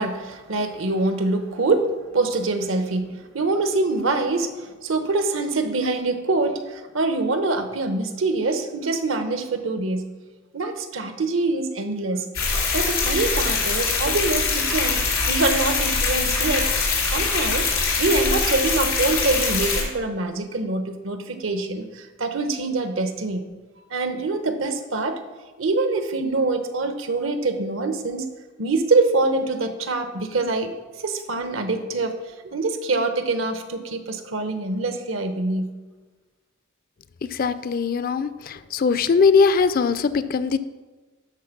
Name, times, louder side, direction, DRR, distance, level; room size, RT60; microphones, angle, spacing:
voice 1, 0.0-10.1 10.5-12.3 12.7-16.7 17.1-17.7 18.0-23.5 23.9-25.2 25.6-28.3 28.6-30.7 31.0-32.2 32.4-35.7, right 3 dB, 75° right, 8 dB, 0.9 m, -24 dB
sound 1, 12.3-19.8, left 4 dB, 85° left, 2.9 m, -23 dB
voice 2, 37.4-40.6, left 5 dB, 45° left, 14 dB, 0.4 m, -20 dB
12.0 x 4.2 x 5.9 m, 1.3 s
head